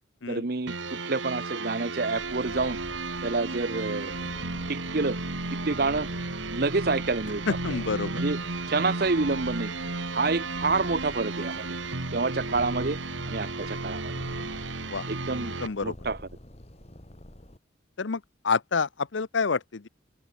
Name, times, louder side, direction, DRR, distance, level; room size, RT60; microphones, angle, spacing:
voice 1, 0.3-2.8 3.2-4.3 4.7-5.2 5.5-6.1 6.5-7.8 8.0-8.4 8.7-9.7 10.1-11.8 12.1-13.0 13.3-14.2 15.1-15.6 15.8-16.2, right 3 dB, 50° right, 0.9 m, -28 dB
sound 1, 0.7-15.7, right 3 dB, 85° right, 2.4 m, -34 dB
Purr, 2.2-17.6, left 1 dB, 35° left, 2.6 m, -47 dB
voice 2, 7.5-8.2 14.9-15.1 15.6-15.9 18.0-19.9, left 4 dB, 80° left, 0.8 m, -28 dB
open air
head